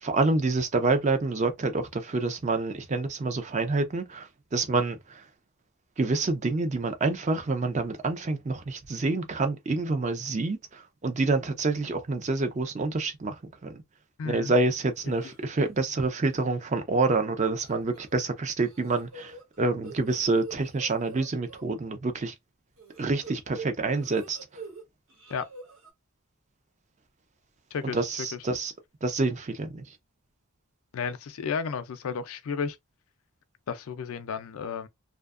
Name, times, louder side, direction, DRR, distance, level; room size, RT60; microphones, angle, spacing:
voice 1, 0.0-5.2 6.0-13.8 14.2-22.3 23.0-24.4 27.9-28.7 29.0-29.8, right 3 dB, 30° right, 0.4 m, -27 dB
voice 2, 14.2-14.5 25.3-25.5 27.7-28.0 30.9-32.8 33.7-34.9, left 6 dB, 70° left, 0.4 m, -32 dB
sound 1, 15.0-15.4 15.8-16.1 16.3-16.4 17.6-18.2 18.6-21.7 22.8-24.8 25.1-25.9, right 4 dB, 65° right, 1.1 m, -45 dB
2.6 x 2.2 x 2.4 m
head